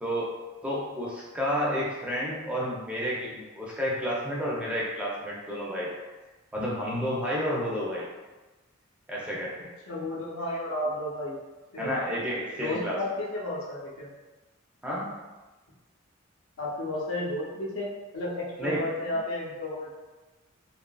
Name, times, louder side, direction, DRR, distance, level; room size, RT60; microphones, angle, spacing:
voice 1, 0.0-5.9 6.5-8.1 9.1-9.7 11.8-13.0 14.8-15.2 18.6-18.9, equal, 5° right, -5 dB, 0.4 m, -31 dB
voice 2, 9.9-11.4 11.7-12.0 12.6-14.1 16.6-17.9 18.1-20.0, left 1 dB, 85° left, -6 dB, 0.7 m, -32 dB
2.7 x 2.4 x 2.2 m, 1.2 s
head